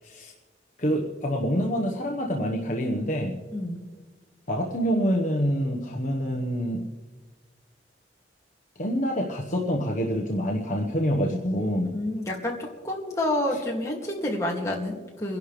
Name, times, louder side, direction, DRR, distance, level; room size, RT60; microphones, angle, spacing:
voice 1, 0.8-3.4 4.5-6.8 8.8-11.9, equal, 45° left, 0 dB, 1.3 m, -26 dB
voice 2, 3.5-3.9 11.9-15.4, left 1 dB, 15° left, -2 dB, 2.4 m, -29 dB
28.0 x 11.5 x 3.3 m, 1.4 s
head